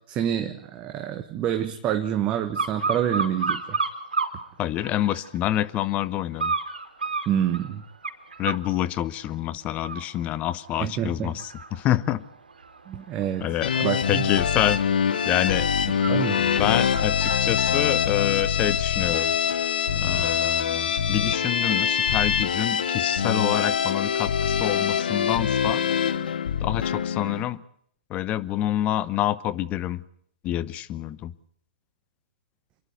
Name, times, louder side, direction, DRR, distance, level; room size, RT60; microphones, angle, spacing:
voice 1, 0.0-3.8 7.3-7.8 10.8-11.3 12.9-14.3 16.1-16.4, right 10 dB, 25° right, 6 dB, 1.3 m, -27 dB
sound 1, 2.5-4.4 4.8-5.5 6.4-8.7 9.2-9.4 9.7-19.1 19.5-19.6, right 4 dB, 90° right, 3.0 m, -33 dB
voice 2, 4.6-6.5 8.4-12.2 13.4-14.8 15.2-15.7 16.4-19.3 20.0-25.8 26.6-27.6 28.1-30.0 30.4-31.3, left 13 dB, 25° left, 16 dB, 1.0 m, -27 dB
sound 2, 13.6-27.4, left 7 dB, 70° left, 1.2 m, -24 dB
28.5 x 11.0 x 9.3 m, 0.66 s
hypercardioid pair, 125°, 5 cm